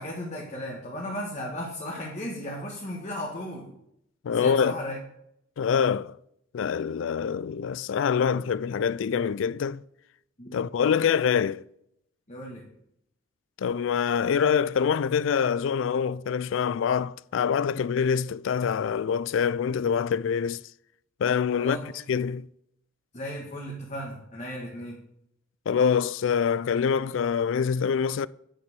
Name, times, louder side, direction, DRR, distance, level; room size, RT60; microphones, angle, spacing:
voice 1, 0.0-3.7 4.3-5.0 10.4-10.7 12.3-12.6 21.6-22.0 23.1-25.0, equal, 35° left, 1.6 m, -35 dB
voice 2, 4.2-4.8 5.6-6.2 6.5-9.8 10.5-11.6 13.6-20.6 21.2-22.5 25.7-28.3, left 7 dB, 65° left, 0.3 m, -25 dB
8.9 x 6.5 x 6.7 m
head